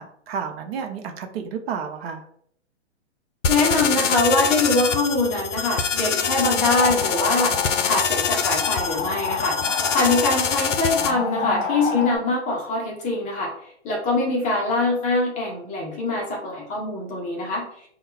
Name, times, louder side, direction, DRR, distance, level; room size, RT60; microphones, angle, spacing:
voice 1, 0.0-2.3 11.0-11.7, right 7 dB, 60° right, 5 dB, 0.7 m, -32 dB
sound 1, 3.4-11.1, left 7 dB, 85° left, 0.5 m, -25 dB
voice 2, 3.5-7.5 7.8-17.7, left 2 dB, 20° left, -1 dB, 0.7 m, -23 dB
sound 2, 6.2-12.2, left 6 dB, 45° left, 1.1 m, -29 dB
4.5 x 2.3 x 3.2 m, 0.65 s
hypercardioid pair, 125°, 36 cm